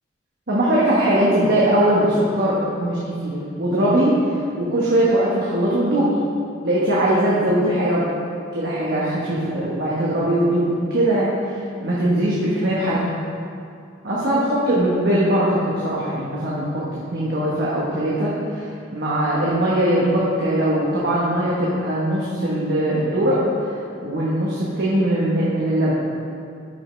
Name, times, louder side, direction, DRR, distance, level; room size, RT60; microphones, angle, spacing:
voice 1, 0.5-4.1 4.6-6.1 6.6-8.1 8.5-11.3 11.8-13.1 14.0-23.4 23.7-25.9, right 1 dB, 55° right, -7 dB, 1.3 m, -20 dB
11.5 x 5.6 x 3.3 m, 2.4 s
head